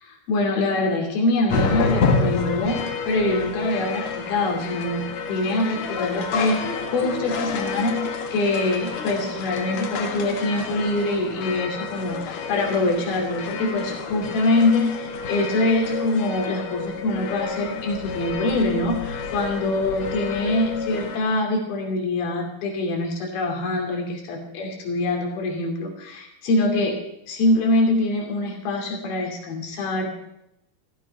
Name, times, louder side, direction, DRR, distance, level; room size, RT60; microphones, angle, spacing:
voice 1, 0.0-30.1, left 2 dB, 75° left, 1 dB, 4.6 m, -24 dB
sound 1, 1.5-21.2, left 4 dB, 55° left, 1.5 m, -29 dB
15.5 x 14.5 x 5.4 m, 0.82 s
omnidirectional pair, 4.3 m